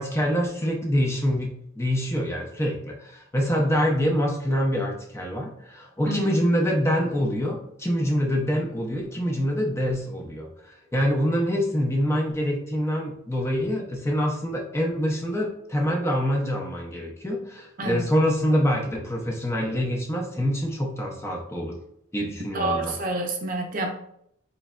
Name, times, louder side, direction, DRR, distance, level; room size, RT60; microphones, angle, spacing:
voice 1, 0.0-21.8 22.1-22.9, equal, 15° left, 0 dB, 0.6 m, -25 dB
voice 2, 22.5-23.9, right 2 dB, 40° right, 3 dB, 0.5 m, -28 dB
4.1 x 3.2 x 2.4 m, 0.71 s
head